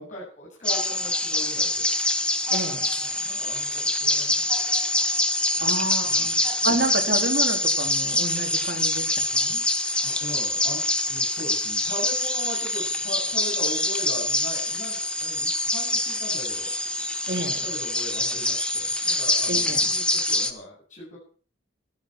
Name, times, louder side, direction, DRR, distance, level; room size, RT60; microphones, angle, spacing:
voice 1, 0.0-1.8 3.0-4.5 5.6-6.3 10.0-21.2, equal, 40° left, -6 dB, 7.8 m, -39 dB
sound 1, 0.6-20.5, left 1 dB, 5° left, 1.4 m, -25 dB
voice 2, 2.5-2.9 5.6-9.1 9.3-9.6 17.3-17.6 19.5-19.9, right 2 dB, 55° right, 2 dB, 3.7 m, -29 dB
15.0 x 14.0 x 6.1 m, 0.43 s
head